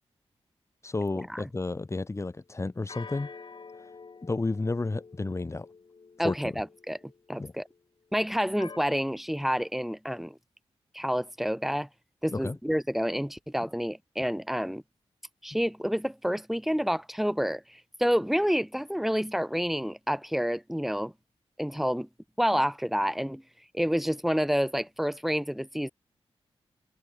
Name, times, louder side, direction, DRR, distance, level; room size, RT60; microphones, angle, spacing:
voice 1, 0.8-3.3 3.8-3.9 4.2-5.7 6.2-6.6 7.4-7.5 12.3-12.6, left 3 dB, 25° left, 3.7 m, -32 dB
sound 1, 2.9-7.8 8.6-8.8, left 4 dB, 50° left, 7.3 m, -48 dB
voice 2, 6.2-7.0 7.3-7.7 8.1-10.4 10.9-11.9 12.2-14.8 15.4-21.1 21.6-22.1 22.4-23.4 23.7-25.9, equal, ahead, 3.1 m, -29 dB
wide cardioid pair, 125°, 11 cm